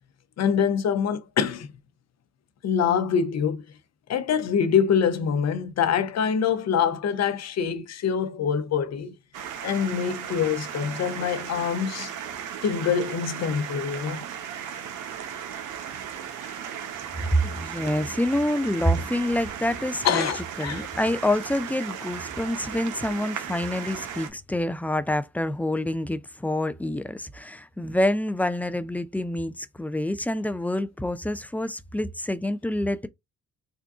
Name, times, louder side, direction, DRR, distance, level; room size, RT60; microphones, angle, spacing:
voice 1, 0.4-1.7 2.6-3.6 4.1-9.1 9.6-12.1 12.6-14.3 20.0-20.8, left 7 dB, 60° left, 0.8 m, -25 dB
sound 1, 9.3-24.3, right 8 dB, 80° right, 0.9 m, -36 dB
voice 2, 17.3-20.3 20.6-33.1, left 1 dB, 5° left, 0.4 m, -27 dB
3.8 x 2.3 x 3.6 m
cardioid pair, 90°, 30 cm